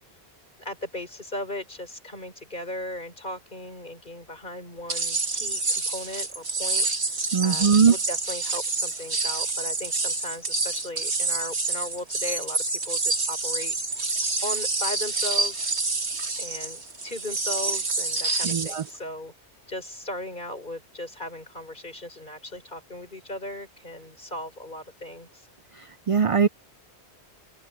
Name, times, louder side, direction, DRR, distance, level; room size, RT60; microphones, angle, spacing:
voice 1, 0.6-13.7 14.4-15.7 16.4-19.3 19.7-25.4, left 1 dB, 45° left, 5.1 m, -37 dB
sound 1, 4.9-18.9, right 3 dB, 85° right, 2.8 m, -28 dB
voice 2, 7.3-7.9 18.4-18.8 26.1-26.5, right 6 dB, 60° right, 0.3 m, -20 dB
open air
omnidirectional pair, 1.1 m